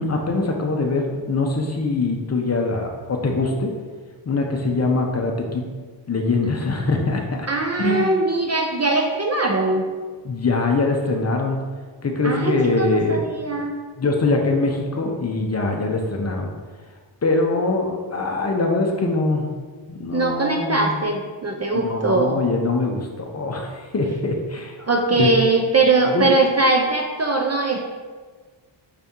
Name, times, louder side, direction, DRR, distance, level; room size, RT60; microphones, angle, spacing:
voice 1, 0.0-3.7 4.3-5.6 6.1-7.5 7.8-8.1 10.2-11.6 12.0-13.2 14.0-16.5 17.2-19.5 19.9-21.1 21.7-24.8 25.1-25.3 26.1-26.2, left 3 dB, 30° left, 2 dB, 0.5 m, -23 dB
voice 2, 7.5-9.9 12.2-13.7 20.1-22.4 24.8-27.9, right 3 dB, 35° right, 2 dB, 0.4 m, -21 dB
5.6 x 2.6 x 3.5 m, 1.5 s
wide cardioid pair, 105°, 49 cm